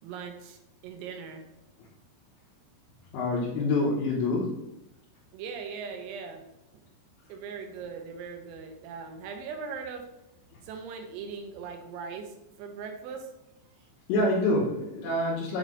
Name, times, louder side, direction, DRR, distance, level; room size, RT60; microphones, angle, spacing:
voice 1, 0.0-1.4 5.3-6.4 7.3-10.0 10.6-13.3, right 5 dB, 85° right, 4 dB, 3.5 m, -40 dB
voice 2, 3.1-4.7 14.1-15.6, left 2 dB, 80° left, -7 dB, 3.7 m, -26 dB
8.5 x 3.3 x 3.9 m, 0.88 s
omnidirectional pair, 6.0 m